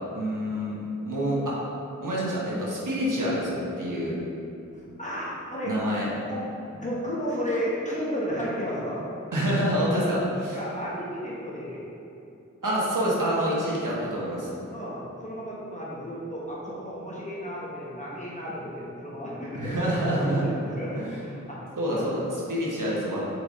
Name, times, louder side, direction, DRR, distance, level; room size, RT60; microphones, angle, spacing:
voice 1, 0.1-0.8 1.0-1.6 2.0-4.1 5.6-6.1 9.3-10.6 12.6-14.5 19.5-20.4 20.9-21.2 21.8-23.2, equal, 85° right, -6 dB, 1.3 m, -27 dB
voice 2, 4.7-5.7 6.3-6.4 6.7-9.0 9.9-10.0 10.5-11.8 14.7-22.2, equal, 25° left, -7 dB, 1.1 m, -33 dB
5.0 x 4.6 x 4.1 m, 2.8 s
wide cardioid pair, 45°, 31 cm